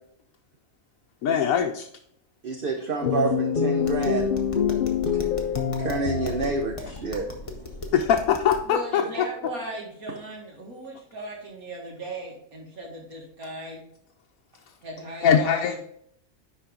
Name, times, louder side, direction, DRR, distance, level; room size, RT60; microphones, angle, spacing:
voice 1, 1.2-1.9 7.9-9.3 15.2-15.7, left 8 dB, 75° left, 3 dB, 1.0 m, -22 dB
voice 2, 2.4-4.3 5.2-5.3 5.8-7.3, right 3 dB, 50° right, 4 dB, 0.8 m, -28 dB
sound 1, 3.0-6.7, left 6 dB, 50° left, 0.7 m, -25 dB
Tap, 3.8-8.7, left 2 dB, 25° left, 1.0 m, -38 dB
voice 3, 8.7-13.8 14.8-15.8, right 1 dB, 80° right, -1 dB, 2.3 m, -37 dB
10.5 x 4.2 x 3.8 m, 0.70 s
omnidirectional pair, 1.5 m